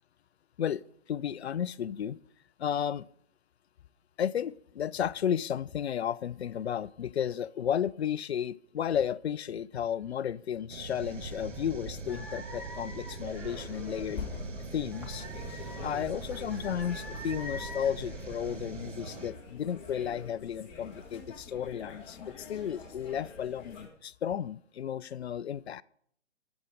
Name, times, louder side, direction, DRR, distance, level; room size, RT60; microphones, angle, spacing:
voice 1, 1.1-2.2 2.6-3.1 4.2-14.3 14.7-15.3 15.8-25.8, left 9 dB, 60° left, 0.5 m, -33 dB
sound 1, 10.7-19.3, right 5 dB, 75° right, 1.1 m, -44 dB
sound 2, 11.0-18.6, right 1 dB, 5° right, 1.1 m, -43 dB
sound 3, 13.5-23.9, left 4 dB, 15° left, 1.6 m, -46 dB
15.5 x 7.1 x 4.9 m
hypercardioid pair, 145°, 37 cm